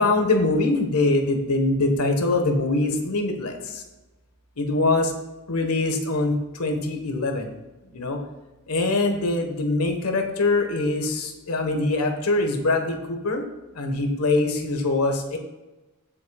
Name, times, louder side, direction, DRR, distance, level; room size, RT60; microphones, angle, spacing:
voice 1, 0.0-3.8 4.6-5.1 5.5-7.5 7.9-8.2 8.7-13.4 13.7-15.4, left 2 dB, 90° left, 4 dB, 1.5 m, -23 dB
16.0 x 7.6 x 2.4 m, 1.1 s
head